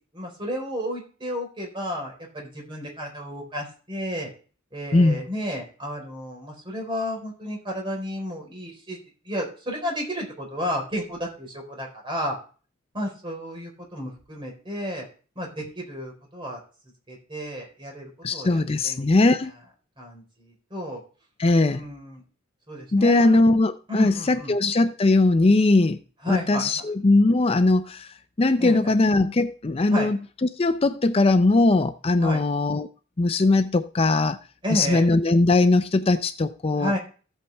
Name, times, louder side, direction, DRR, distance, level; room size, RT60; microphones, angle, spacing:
voice 1, 0.1-4.3 4.7-9.0 9.3-12.3 12.9-15.1 15.4-16.6 17.1-19.1 19.3-19.4 20.0-21.0 21.7-22.2 22.7-23.4 23.9-24.5 26.2-26.7 28.6-28.9 29.9-30.1 32.2-32.4 34.6-35.1 36.8-37.0, equal, 25° right, 4.2 m, -32 dB
voice 2, 4.9-5.2 18.2-19.5 21.4-21.9 22.9-26.0 26.3-32.9 33.2-34.4 34.7-36.9, left 2 dB, 30° left, 0.5 m, -20 dB
14.0 x 8.1 x 3.4 m
head